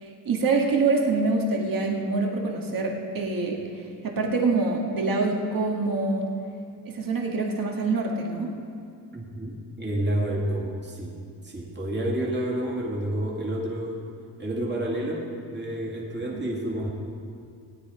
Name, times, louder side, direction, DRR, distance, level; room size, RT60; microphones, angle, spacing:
voice 1, 0.0-3.6 4.0-6.3 6.9-8.5 16.3-16.4, right 3 dB, 55° right, 0 dB, 1.9 m, -25 dB
voice 2, 9.1-11.2 11.4-14.0 14.4-16.9, right 1 dB, 25° right, -3 dB, 2.2 m, -29 dB
17.0 x 9.7 x 5.0 m, 2.4 s
cardioid pair, 110°, 41 cm